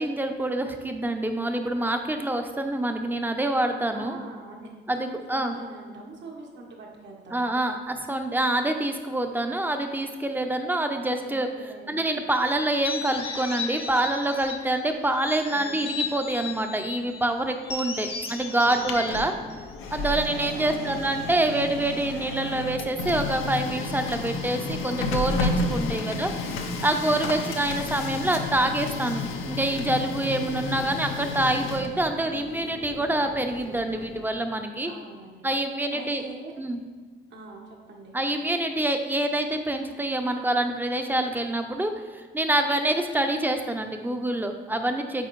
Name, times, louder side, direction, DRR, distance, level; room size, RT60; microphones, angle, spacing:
voice 1, 0.0-4.2 4.9-5.6 7.3-11.5 11.9-19.3 19.9-26.3 26.8-34.9 35.4-36.2 36.6-36.8 38.1-45.3, right 1 dB, 10° right, 6 dB, 0.6 m, -26 dB
voice 2, 3.9-7.4 11.2-12.0 15.4-15.8 18.4-19.1 20.5-20.9 25.9-26.6 34.9-35.5 35.9-36.5 37.3-38.2, right 2 dB, 65° right, 0 dB, 1.2 m, -43 dB
sound 1, 12.6-14.7 15.1-17.0 17.6-20.1, left 5 dB, 30° left, 0.8 m, -36 dB
Printer, 18.6-34.4, left 3 dB, 85° left, 0.7 m, -32 dB
8.2 x 4.2 x 3.1 m, 1.5 s
cardioid pair, 90°, 20 cm